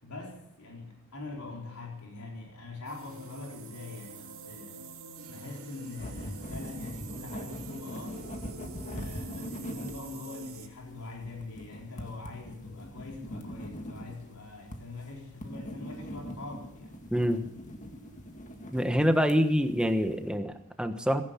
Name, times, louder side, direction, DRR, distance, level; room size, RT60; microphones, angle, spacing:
voice 1, 0.0-4.8 5.3-8.3 8.9-16.9, left 3 dB, 90° left, -1 dB, 4.1 m, -43 dB
sound 1, 2.8-10.7, right 3 dB, 70° right, 2.8 m, -46 dB
sound 2, 6.0-20.3, equal, 35° left, 1.9 m, -42 dB
voice 2, 17.1-17.4 18.7-21.2, equal, 5° right, 7 dB, 1.2 m, -26 dB
16.0 x 15.5 x 5.8 m, 0.75 s
head